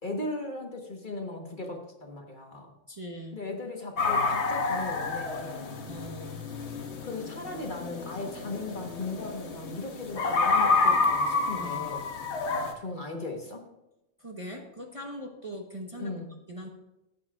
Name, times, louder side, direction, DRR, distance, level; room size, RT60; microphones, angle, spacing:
voice 1, 0.0-2.7 3.3-5.8 7.0-12.0 12.4-13.6 16.0-16.3, left 2 dB, 40° left, 2 dB, 1.3 m, -37 dB
voice 2, 2.9-3.4 5.9-6.4 11.5-11.9 14.2-16.1 16.5-16.7, equal, 25° right, 0 dB, 1.0 m, -41 dB
sound 1, 4.0-12.7, left 4 dB, 60° left, 1.3 m, -29 dB
15.0 x 8.5 x 2.4 m, 0.91 s
omnidirectional pair, 1.4 m